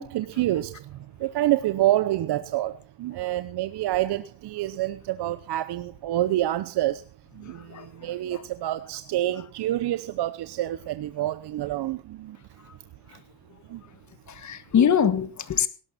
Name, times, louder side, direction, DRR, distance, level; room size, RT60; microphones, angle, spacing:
voice 1, 0.0-7.1 7.3-12.7 13.1-13.2 13.6-13.8, right 14 dB, 55° right, 0.9 m, -28 dB
voice 2, 7.4-8.4 12.6-12.8 13.1-13.2 14.3-15.7, left 8 dB, 35° left, 1.6 m, -25 dB
18.0 x 12.0 x 4.3 m
cardioid pair, 120°, 48 cm